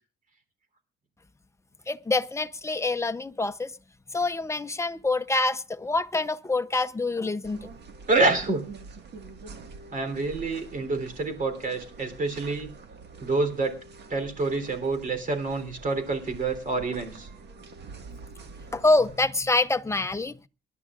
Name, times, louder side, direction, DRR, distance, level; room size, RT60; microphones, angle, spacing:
voice 1, 1.9-3.7 4.1-7.7 18.7-20.4, left 2 dB, 15° left, 0.7 m, -26 dB
sound 1, 7.4-19.3, right 4 dB, 60° right, 1.8 m, -46 dB
voice 2, 8.1-8.7 9.9-12.7 13.2-13.8 14.1-17.3, right 3 dB, 45° right, 3.5 m, -27 dB
27.0 x 11.0 x 2.5 m
cardioid pair, 90°, 20 cm